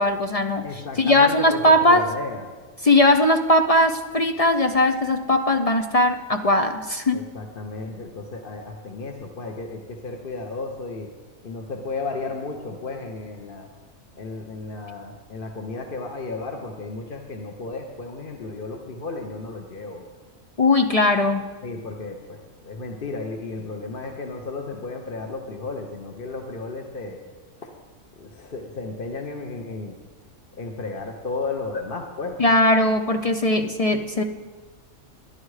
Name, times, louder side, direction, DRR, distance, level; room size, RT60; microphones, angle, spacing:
voice 1, 0.0-2.1 2.8-7.2 20.6-21.5 32.4-34.2, left 1 dB, 60° left, 7 dB, 0.3 m, -19 dB
voice 2, 0.6-2.5 7.1-11.1 11.4-13.7 14.2-20.0 21.6-27.2 27.6-27.7 28.2-29.9 30.5-32.4, left 3 dB, 45° left, 2 dB, 1.0 m, -33 dB
11.5 x 11.5 x 4.8 m, 1.4 s
omnidirectional pair, 1.4 m